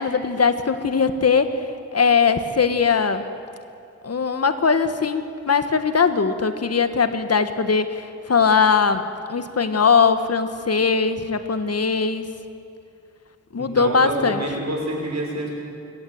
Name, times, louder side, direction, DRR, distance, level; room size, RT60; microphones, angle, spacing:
voice 1, 0.0-1.6 1.9-3.3 4.0-9.0 9.3-12.2 13.5-14.4, left 5 dB, 50° left, 9 dB, 1.4 m, -20 dB
voice 2, 13.5-15.5, right 2 dB, 60° right, -1 dB, 6.2 m, -27 dB
24.5 x 16.5 x 7.8 m, 2.7 s
wide cardioid pair, 80°, 31 cm